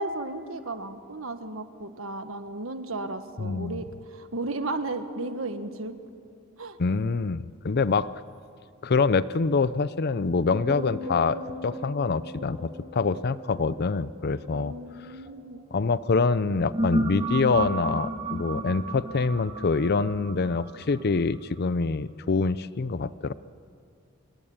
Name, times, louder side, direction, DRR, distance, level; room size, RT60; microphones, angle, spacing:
voice 1, 0.0-5.9 6.6-6.8 14.5-15.6, right 2 dB, 75° right, 9 dB, 1.6 m, -34 dB
voice 2, 3.4-3.8 6.8-8.1 8.8-14.7 15.7-23.3, left 4 dB, 50° left, 16 dB, 0.6 m, -25 dB
sound 1, 10.5-15.8 16.4-21.3, right 1 dB, 25° right, 2.0 m, -34 dB
27.5 x 22.0 x 8.8 m, 2.5 s
head